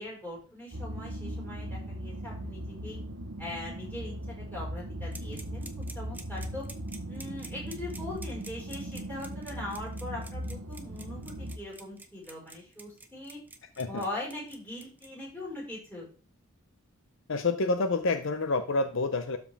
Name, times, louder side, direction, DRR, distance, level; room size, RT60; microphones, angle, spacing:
voice 1, 0.0-3.0 3.4-6.6 7.1-13.4 13.8-16.1, left 1 dB, 10° left, -3 dB, 5.1 m, -41 dB
sound 1, 0.7-11.6, right 1 dB, 90° right, 1.1 m, -38 dB
sound 2, 5.1-15.1, right 3 dB, 10° right, 0.8 m, -47 dB
voice 2, 17.3-19.4, left 3 dB, 60° left, 8 dB, 0.7 m, -28 dB
12.5 x 4.8 x 3.5 m, 0.39 s
head